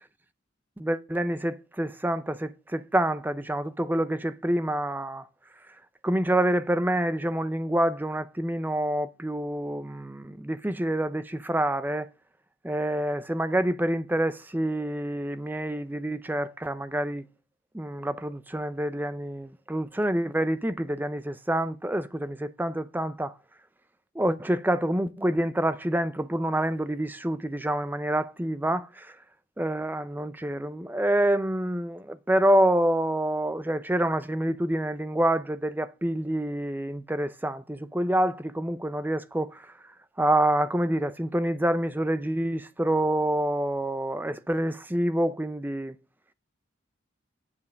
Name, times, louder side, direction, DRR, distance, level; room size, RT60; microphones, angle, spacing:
voice 1, 0.8-5.3 6.0-12.1 12.6-17.3 17.7-23.3 24.1-29.2 29.6-39.7 40.2-46.0, right 1 dB, 10° right, 0.5 m, -27 dB
9.5 x 5.4 x 6.3 m
head